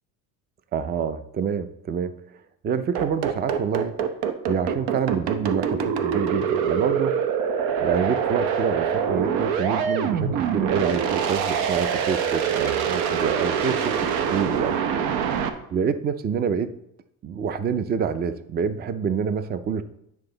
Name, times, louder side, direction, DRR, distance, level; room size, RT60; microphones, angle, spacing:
voice 1, 0.7-2.1 2.6-3.9 4.5-7.2 7.8-14.8 15.7-16.7 17.2-19.8, right 6 dB, 25° right, 12 dB, 0.4 m, -27 dB
sound 1, 3.0-15.5, right 7 dB, 85° right, 0.9 m, -24 dB
9.7 x 5.4 x 3.9 m, 0.78 s
cardioid pair, 130°, 36 cm